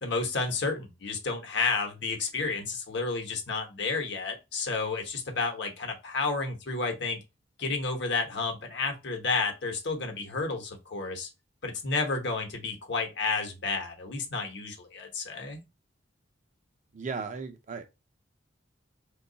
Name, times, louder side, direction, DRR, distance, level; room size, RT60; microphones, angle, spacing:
voice 1, 0.0-7.2 7.6-11.3 11.6-15.6, left 4 dB, 65° left, 0.9 m, -31 dB
voice 2, 16.9-17.9, right 5 dB, 40° right, 0.5 m, -36 dB
3.0 x 2.3 x 3.8 m
head